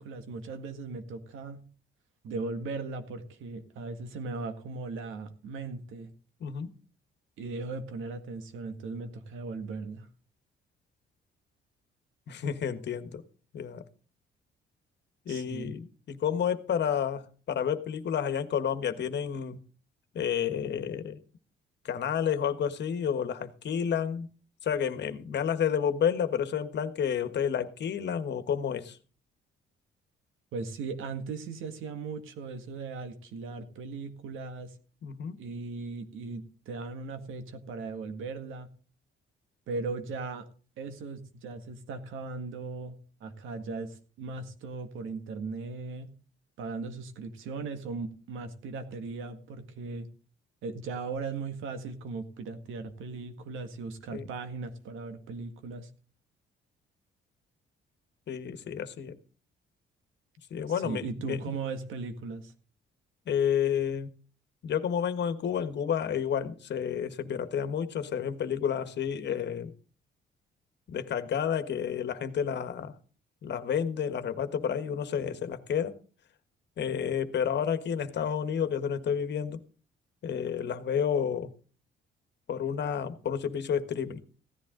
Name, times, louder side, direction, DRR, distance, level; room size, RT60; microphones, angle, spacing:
voice 1, 0.0-1.7 2.2-6.1 7.4-10.1 15.3-15.7 30.5-34.8 35.4-38.7 39.7-40.5 40.8-46.1 46.6-50.1 50.6-55.9 60.7-62.5, right 4 dB, 85° right, 1.9 m, -38 dB
voice 2, 6.4-6.7 12.3-13.2 13.5-13.8 15.2-19.6 20.1-21.2 21.8-24.3 24.6-29.0 35.0-35.4 54.1-54.3 58.3-59.2 60.5-61.6 63.3-64.1 64.6-69.7 70.9-73.0 73.4-76.0 76.8-79.6 80.2-81.5 82.5-84.2, left 8 dB, 60° left, 1.4 m, -30 dB
16.0 x 10.5 x 3.8 m
cardioid pair, 90°, 20 cm